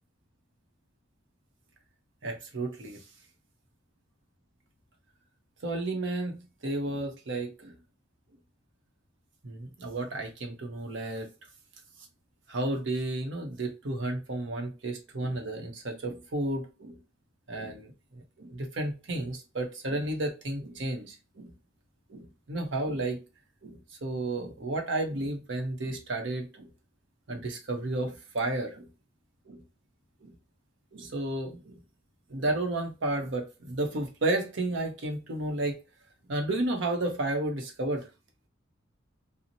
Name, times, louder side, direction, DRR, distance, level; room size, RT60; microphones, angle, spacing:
voice 1, 2.2-3.0 5.6-7.7 9.4-11.3 12.5-17.0 17.5-21.5 22.1-23.2 23.6-26.7 27.3-28.9 29.5-29.6 30.2-30.3 30.9-31.8 32.3-35.8 36.3-38.1, right 2 dB, 65° right, 0.8 m, -32 dB
2.7 x 2.0 x 2.7 m
head